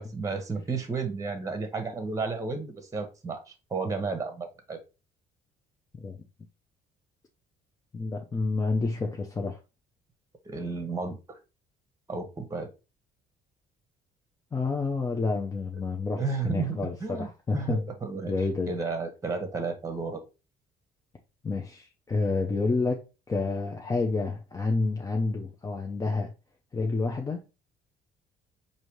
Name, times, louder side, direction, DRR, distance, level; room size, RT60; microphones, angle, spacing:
voice 1, 0.0-4.8 10.4-11.4 12.1-12.7 16.2-18.3 18.7-20.2, right 4 dB, 20° right, 0.9 m, -32 dB
voice 2, 7.9-9.6 14.5-17.8 18.3-18.7 21.4-26.3 26.7-27.5, left 3 dB, 20° left, 0.6 m, -29 dB
4.9 x 2.7 x 3.1 m
cardioid pair, 110°, 17 cm